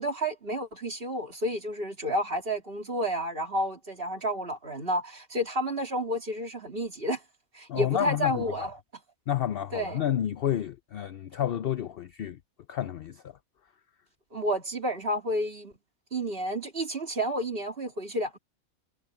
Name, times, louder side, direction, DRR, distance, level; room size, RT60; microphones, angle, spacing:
voice 1, 0.0-7.2 7.5-8.7 9.7-10.0 14.3-15.7 16.1-18.4, equal, 40° right, 3.1 m, -30 dB
voice 2, 7.7-8.4 9.3-12.4 12.7-13.3, left 10 dB, 60° left, 0.6 m, -30 dB
omnidirectional pair, 1.5 m